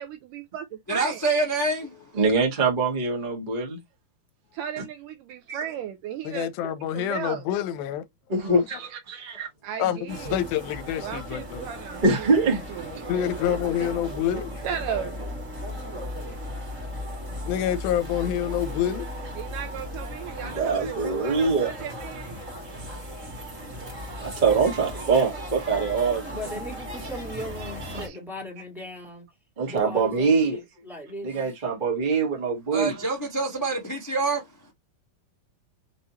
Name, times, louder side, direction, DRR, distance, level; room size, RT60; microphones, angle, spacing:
voice 1, 0.0-1.2 4.5-6.5 6.9-7.4 9.6-10.4 11.0-13.1 14.6-15.3 19.4-22.4, right 9 dB, 75° right, 2.1 m, -35 dB
voice 2, 0.9-1.9 32.7-34.4, right 3 dB, 15° left, 0.6 m, -26 dB
voice 3, 2.1-3.8 4.8-4.9 5.5-5.6 8.3-9.5 12.0-12.6 20.4-21.7 24.2-26.2 27.9-28.1 29.6-30.6 31.2-33.0, right 4 dB, 50° right, 0.5 m, -24 dB
voice 4, 6.2-8.0 8.4-8.6 9.8-11.7 13.1-14.5 17.5-19.1, left 10 dB, 85° left, 2.4 m, -27 dB
sound 1, 10.1-28.1, equal, 35° right, 1.4 m, -36 dB
voice 5, 26.3-29.2 29.6-30.6 30.9-31.3, equal, ahead, 1.0 m, -37 dB
6.0 x 2.8 x 3.0 m
omnidirectional pair, 4.2 m